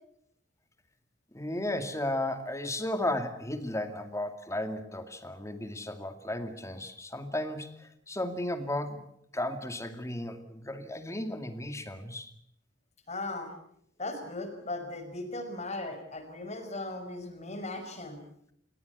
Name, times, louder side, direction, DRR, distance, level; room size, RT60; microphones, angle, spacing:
voice 1, 1.3-9.1 9.3-12.3, left 1 dB, 15° left, 8 dB, 2.2 m, -34 dB
voice 2, 13.1-13.5 14.0-18.2, left 2 dB, 40° left, 6 dB, 5.4 m, -37 dB
29.5 x 17.5 x 8.2 m, 0.71 s
head